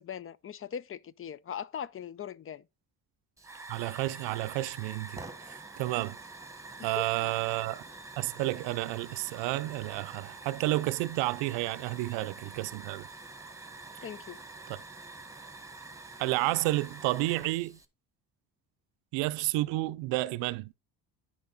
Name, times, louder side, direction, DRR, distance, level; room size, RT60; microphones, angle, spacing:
voice 1, 0.0-2.6 6.8-7.3 14.0-14.4, left 8 dB, 30° left, 0.5 m, -40 dB
Hiss / Fire, 3.4-17.9, right 3 dB, 5° right, 1.4 m, -46 dB
voice 2, 3.7-5.2 5.8-6.2 6.8-7.8 8.2-13.1 16.2-17.8 19.1-20.7, right 18 dB, 75° right, 0.6 m, -31 dB
9.5 x 5.1 x 4.1 m
supercardioid pair, 60°, 44 cm